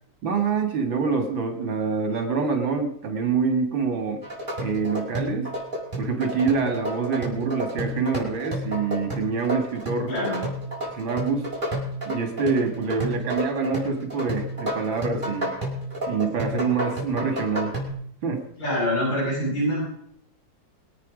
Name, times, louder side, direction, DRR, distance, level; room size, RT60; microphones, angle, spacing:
voice 1, 0.2-4.2 4.6-5.5 6.0-10.1 10.9-11.5 12.1-15.5 16.1-17.8 18.2-18.4, right 5 dB, 80° right, 5 dB, 2.8 m, -26 dB
sound 1, 4.2-17.9, equal, 25° right, 5.5 m, -31 dB
voice 2, 10.1-10.4 18.6-19.8, equal, 65° left, -6 dB, 8.8 m, -25 dB
24.5 x 9.0 x 5.1 m, 0.69 s
omnidirectional pair, 2.1 m